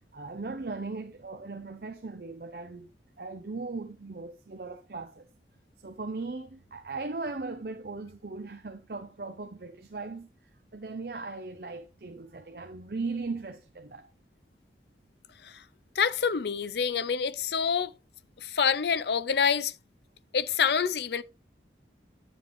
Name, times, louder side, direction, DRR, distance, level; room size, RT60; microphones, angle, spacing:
voice 1, 0.1-2.9 3.2-5.3 5.8-10.3 10.7-14.1, right 3 dB, 55° right, 0.7 m, -38 dB
voice 2, 15.9-17.9 18.4-19.7 20.3-21.2, left 6 dB, 70° left, 0.6 m, -27 dB
10.0 x 7.2 x 3.1 m
head